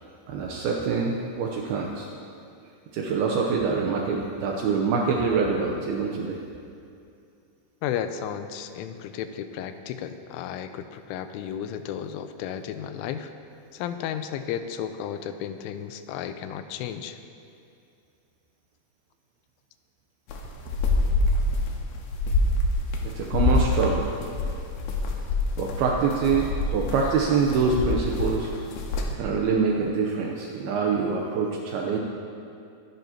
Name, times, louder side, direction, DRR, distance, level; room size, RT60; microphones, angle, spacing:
voice 1, 0.3-2.1 2.9-6.4 23.0-24.1 25.6-28.5 29.1-32.0, right 5 dB, 85° right, 0 dB, 2.2 m, -25 dB
voice 2, 7.8-13.3 13.7-17.2, left 9 dB, 85° left, 9 dB, 3.1 m, -33 dB
sound 1, 20.3-29.2, left 2 dB, 70° left, 2.7 m, -26 dB
23.5 x 10.5 x 2.9 m, 2.5 s
omnidirectional pair, 5.5 m